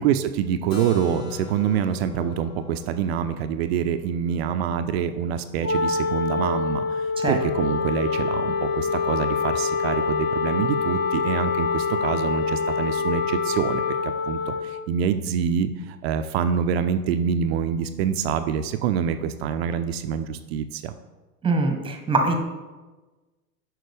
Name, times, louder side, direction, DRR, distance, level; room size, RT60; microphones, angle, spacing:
voice 1, 0.0-20.9, right 8 dB, 45° right, 9 dB, 0.4 m, -26 dB
Keyboard (musical), 0.7-6.3, left 5 dB, 70° left, 1.5 m, -41 dB
Wind instrument woodwind instrument, 5.6-14.8, left 4 dB, 25° left, 1.1 m, -27 dB
Wind instrument woodwind instrument 2, 7.4-14.1, left 10 dB, 40° left, 0.5 m, -30 dB
voice 2, 21.4-22.4, right 3 dB, 10° right, 5 dB, 1.0 m, -23 dB
9.1 x 5.9 x 3.4 m, 1.2 s
figure-of-eight pair, 90°, 48 cm